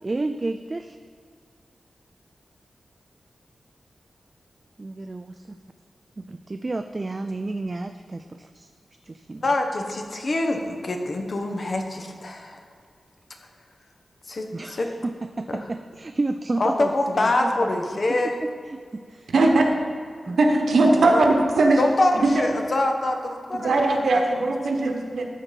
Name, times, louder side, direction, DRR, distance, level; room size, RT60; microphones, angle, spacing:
voice 1, 0.0-1.0 4.8-5.6 6.2-8.7 9.0-9.4 14.5-17.9 18.4-19.3 20.3-20.4, right 2 dB, 30° right, 8 dB, 0.3 m, -31 dB
voice 2, 9.4-12.6 14.3-14.9 15.5-15.6 16.6-18.3 20.8-21.3 21.8-24.2 24.8-25.0, left 2 dB, 45° left, 3 dB, 1.1 m, -25 dB
voice 3, 19.3-19.6 20.4-21.8 22.2-22.3 23.6-25.3, right 2 dB, 90° right, 2 dB, 1.3 m, -19 dB
13.0 x 4.5 x 5.8 m, 2.2 s
wide cardioid pair, 135°, 0 cm